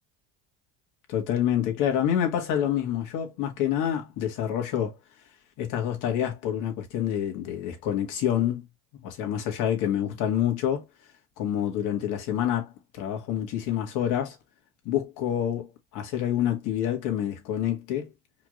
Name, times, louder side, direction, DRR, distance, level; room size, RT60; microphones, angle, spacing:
voice 1, 1.1-5.0 5.6-8.7 8.9-10.9 11.4-14.4 14.9-18.1, left 10 dB, 60° left, 2.0 m, -27 dB
4.9 x 3.3 x 2.5 m
supercardioid pair, 115°, 34 cm